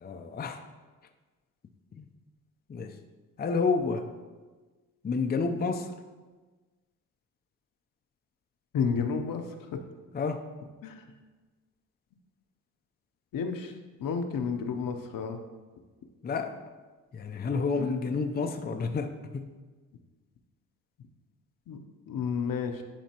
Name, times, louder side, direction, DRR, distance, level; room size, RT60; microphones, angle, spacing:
voice 1, 0.0-0.6 2.0-2.1 2.7-3.0 3.4-4.1 5.0-5.9 10.1-10.4 16.2-16.5 17.1-19.5, left 4 dB, 25° left, 5 dB, 0.5 m, -29 dB
voice 2, 8.7-9.4 9.7-9.8 10.8-11.0 13.3-13.7 14.0-15.4 17.8-17.9 21.7-22.8, left 6 dB, 60° left, 5 dB, 0.8 m, -31 dB
10.5 x 4.3 x 2.9 m, 1.3 s
cardioid pair, 75°, 37 cm